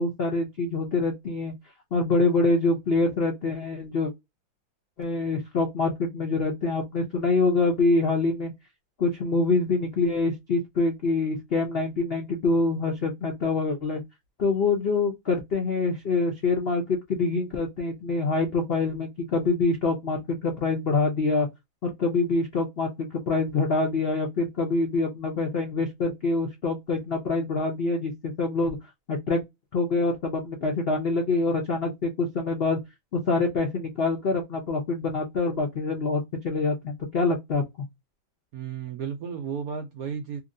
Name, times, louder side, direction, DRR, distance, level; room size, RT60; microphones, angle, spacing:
voice 1, 0.0-1.5 1.9-4.1 5.0-8.5 9.0-14.0 14.4-21.5 21.8-28.8 29.1-29.4 29.7-32.8 33.1-37.9, left 3 dB, 80° left, 0.5 m, -25 dB
voice 2, 38.5-40.4, right 7 dB, 75° right, 0.8 m, -33 dB
2.9 x 2.8 x 2.6 m
omnidirectional pair, 2.1 m